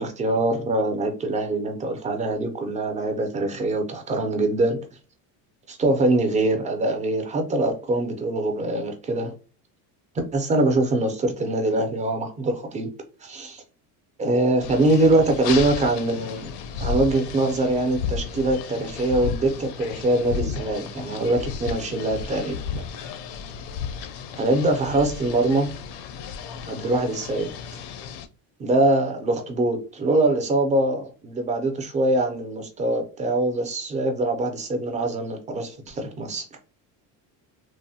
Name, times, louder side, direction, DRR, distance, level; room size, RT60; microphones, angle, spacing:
voice 1, 0.0-4.8 5.7-9.3 10.3-12.9 13.2-13.6 14.2-16.5 16.8-22.8 24.4-25.7 26.7-27.5 28.6-36.4, right 2 dB, 20° right, 0.4 m, -23 dB
sound 1, 14.6-28.3, left 6 dB, 75° left, 0.5 m, -33 dB
3.0 x 2.0 x 2.6 m
cardioid pair, 150°, 42 cm